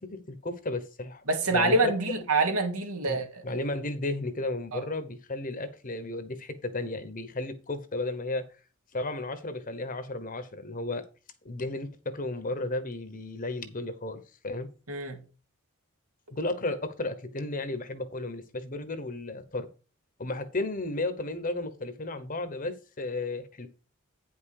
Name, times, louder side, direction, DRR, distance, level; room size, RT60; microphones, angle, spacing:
voice 1, 0.1-1.9 3.1-8.4 8.9-11.0 11.4-14.7 16.3-19.7 20.2-23.7, left 2 dB, 40° left, 1.0 m, -34 dB
voice 2, 1.3-3.6 4.7-4.8 14.9-15.2, right 2 dB, 85° right, 2.4 m, -26 dB
9.2 x 5.6 x 4.8 m
head